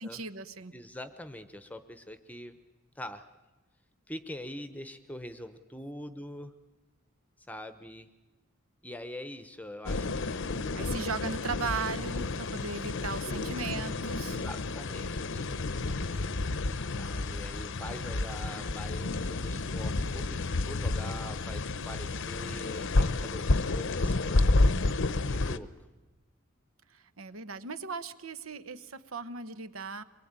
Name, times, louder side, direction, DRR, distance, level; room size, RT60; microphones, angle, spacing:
voice 1, 0.0-0.8 10.7-14.4 26.9-30.0, right 4 dB, 90° right, 13 dB, 1.1 m, -37 dB
voice 2, 0.7-2.6 3.0-3.3 4.1-6.5 7.4-8.1 8.8-11.1 13.2-13.7 14.3-15.8 16.1-16.5 16.9-24.6 25.3-25.7, left 1 dB, 10° left, 10 dB, 0.8 m, -44 dB
sound 1, 9.9-25.6, left 2 dB, 65° left, 0.8 m, -30 dB
24.0 x 22.0 x 8.8 m, 1.1 s
head